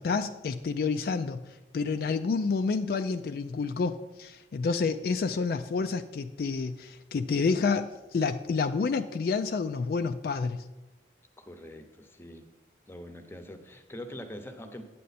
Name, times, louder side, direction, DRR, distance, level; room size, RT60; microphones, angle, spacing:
voice 1, 0.0-1.4 1.7-10.6, left 4 dB, 55° left, 9 dB, 0.3 m, -29 dB
voice 2, 11.4-12.5 12.9-14.8, left 1 dB, 15° left, 7 dB, 0.7 m, -43 dB
9.2 x 7.5 x 4.1 m, 1.1 s
head